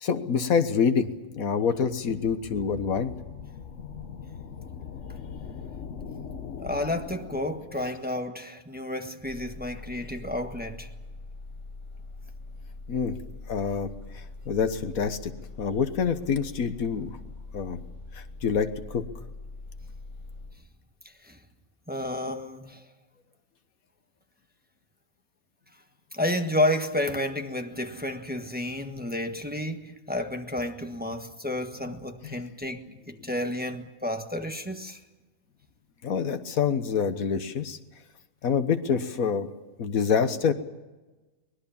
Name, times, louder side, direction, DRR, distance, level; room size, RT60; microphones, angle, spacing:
voice 1, 0.0-3.1 12.9-13.1 13.5-13.9 14.1-15.3 15.6-17.1 17.5-17.8 18.1-19.0 32.2-32.3 36.0-37.8 38.4-39.5 39.8-40.5, left 6 dB, 80° left, 1.6 m, -26 dB
sound 1, 1.9-8.2, left 6 dB, 60° left, 1.4 m, -41 dB
voice 2, 6.6-10.9 21.2-21.4 21.9-22.8 26.1-35.0, left 1 dB, 5° right, 1.3 m, -31 dB
sound 2, 9.2-20.5, left 3 dB, 35° left, 7.1 m, -43 dB
23.5 x 20.5 x 7.1 m
omnidirectional pair, 1.5 m